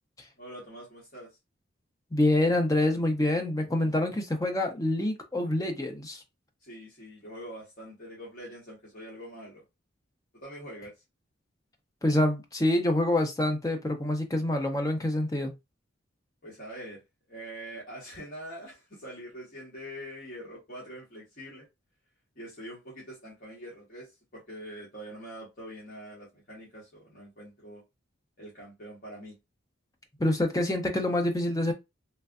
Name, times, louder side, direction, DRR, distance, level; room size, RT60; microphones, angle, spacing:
voice 1, 0.4-1.4 6.6-9.6 10.4-11.0 16.4-17.0 17.3-21.7 22.3-27.8 28.4-29.4, equal, 45° left, 1.1 m, -44 dB
voice 2, 2.1-6.2 12.0-15.5 30.2-31.7, left 1 dB, 15° left, 0.5 m, -26 dB
3.2 x 2.5 x 2.3 m
head